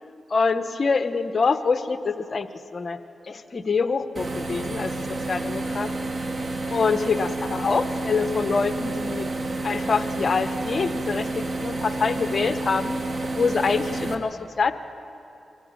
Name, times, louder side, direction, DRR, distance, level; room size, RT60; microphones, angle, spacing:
voice 1, 0.3-5.9 6.7-9.3 9.6-13.0 13.3-14.7, left 4 dB, 55° left, 10 dB, 1.2 m, -25 dB
sound 1, 4.1-14.1, right 2 dB, 50° right, 2.0 m, -30 dB
24.0 x 14.5 x 8.8 m, 2.8 s
supercardioid pair, 45°, 0 cm